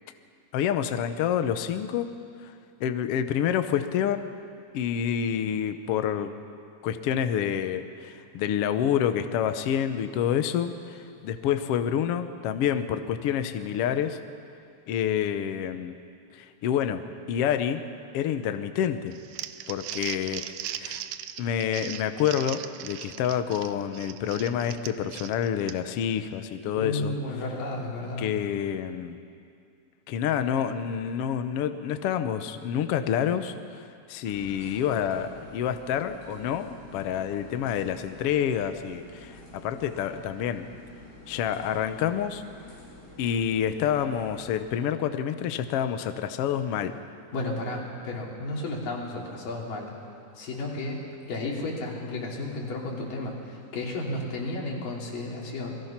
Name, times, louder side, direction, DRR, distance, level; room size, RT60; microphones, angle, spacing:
voice 1, 0.5-2.1 2.4-2.5 2.8-4.3 4.7-6.3 6.8-14.2 14.9-15.9 16.3-17.8 18.1-19.1 19.7-20.4 20.8-21.1 21.4-27.1 28.2-29.2 30.1-33.8 34.1-40.7 41.3-42.4 43.2-46.9, left 9 dB, 65° left, 9 dB, 1.5 m, -28 dB
Crumpling crinkling, 19.1-26.0, right 12 dB, 85° right, 2.4 m, -38 dB
voice 2, 26.8-28.3 47.3-49.9 50.4-51.0 51.3-55.7, left 2 dB, 85° left, -2 dB, 4.8 m, -33 dB
sound 1, 34.2-44.5, left 1 dB, 30° left, 8.4 m, -49 dB
29.5 x 20.5 x 5.9 m, 2.4 s
omnidirectional pair, 3.7 m